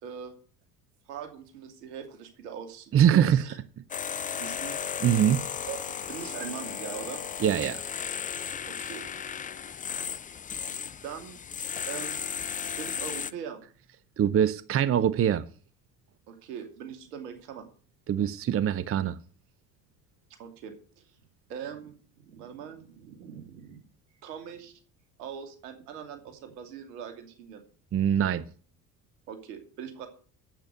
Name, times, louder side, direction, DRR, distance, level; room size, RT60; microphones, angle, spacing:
voice 1, 0.0-0.3 1.1-3.6 4.3-4.8 5.7-7.2 8.7-9.0 11.0-11.4 11.8-12.2 12.6-13.6 16.3-17.6 20.3-21.0 21.5-23.8 24.2-24.8 25.2-27.6 29.3-30.1, right 8 dB, 70° right, 2.8 m, -41 dB
voice 2, 2.9-3.4 5.0-5.4 7.4-7.8 14.2-15.4 18.1-19.2 27.9-28.4, right 9 dB, 30° right, 0.7 m, -23 dB
sound 1, 3.9-13.3, left 7 dB, 15° left, 0.5 m, -35 dB
9.0 x 8.4 x 8.0 m
figure-of-eight pair, 60°, 49 cm